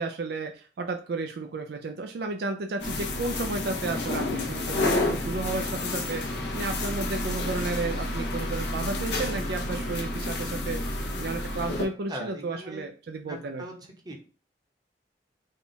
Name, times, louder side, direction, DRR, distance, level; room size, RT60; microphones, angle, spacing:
voice 1, 0.0-13.6, right 3 dB, 60° right, 4 dB, 0.4 m, -33 dB
sound 1, 2.8-11.8, left 2 dB, 70° left, 0.7 m, -30 dB
voice 2, 12.1-12.9 13.2-13.8 14.0-14.1, right 1 dB, 25° right, 1 dB, 0.8 m, -39 dB
3.6 x 2.3 x 3.9 m, 0.38 s
head